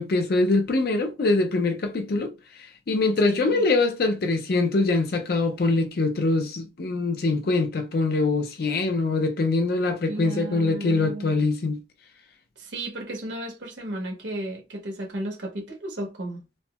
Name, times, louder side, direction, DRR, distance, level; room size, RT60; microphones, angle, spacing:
voice 1, 0.0-2.3 2.9-11.8, left 3 dB, 55° left, 0.4 m, -23 dB
voice 2, 3.2-3.6 10.1-11.3 12.6-16.4, right 1 dB, 75° right, 1.1 m, -34 dB
4.1 x 2.0 x 2.2 m
head